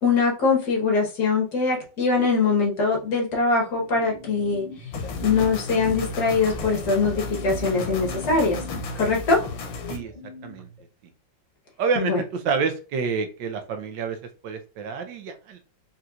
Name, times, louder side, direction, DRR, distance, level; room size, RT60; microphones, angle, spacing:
voice 1, 0.0-4.7 5.2-8.6 9.0-9.4 12.0-12.2, left 4 dB, 60° left, 0 dB, 1.8 m, -22 dB
sound 1, 3.8-10.8, left 1 dB, 30° left, 0.8 m, -41 dB
sound 2, 4.9-10.0, left 3 dB, 85° left, 1.5 m, -34 dB
voice 2, 11.8-14.2 14.4-15.6, right 5 dB, 75° right, 6 dB, 1.3 m, -28 dB
4.3 x 3.8 x 2.4 m, 0.35 s
omnidirectional pair, 2.1 m